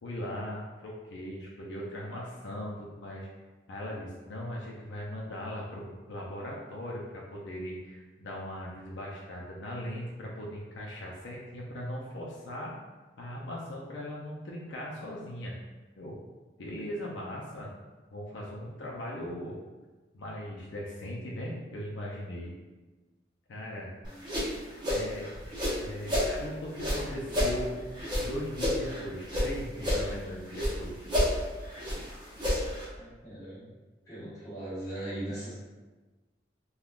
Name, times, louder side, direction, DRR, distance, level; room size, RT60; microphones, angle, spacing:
voice 1, 0.0-3.3 3.7-12.7 13.2-15.5 16.0-16.2 16.6-17.7 18.1-19.6 20.1-22.5 23.5-23.9 24.9-25.3 25.8-27.9 28.2-31.1, equal, 75° left, -4 dB, 0.5 m, -39 dB
sound 1, 24.0-26.3 26.7-29.5 29.8-30.8 31.0-32.9, left 1 dB, 25° right, 0.7 m, -30 dB
voice 2, 32.9-33.7 34.0-35.5, right 1 dB, 20° left, -11 dB, 1.2 m, -39 dB
3.5 x 2.2 x 2.3 m, 1.2 s
head